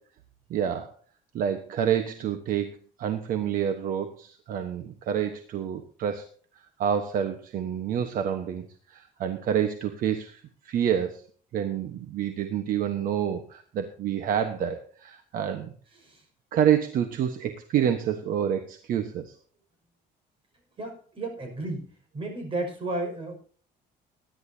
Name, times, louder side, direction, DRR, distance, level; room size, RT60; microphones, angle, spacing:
voice 1, 0.5-0.9 1.3-6.3 6.8-11.2 11.5-15.7 16.5-19.3, right 9 dB, 60° right, 7 dB, 1.3 m, -28 dB
voice 2, 15.9-16.3 20.8-23.3, right 2 dB, 35° right, 3 dB, 5.9 m, -33 dB
20.5 x 10.5 x 2.8 m, 0.43 s
cardioid pair, 150°, 16 cm